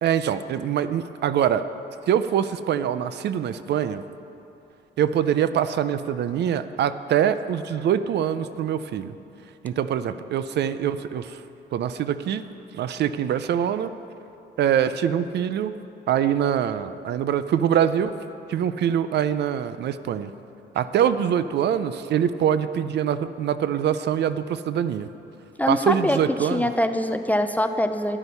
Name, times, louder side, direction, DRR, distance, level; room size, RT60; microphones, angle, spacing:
voice 1, 0.0-1.6 2.1-4.0 5.0-9.1 9.6-11.4 11.7-12.4 12.7-13.9 14.6-15.7 16.1-18.1 18.5-20.3 20.8-25.1 25.7-26.7, right 9 dB, 60° right, 12 dB, 0.5 m, -24 dB
voice 2, 25.6-28.2, left 1 dB, 10° left, 8 dB, 0.4 m, -24 dB
12.5 x 10.0 x 5.5 m, 2.8 s
cardioid pair, 145°, 20 cm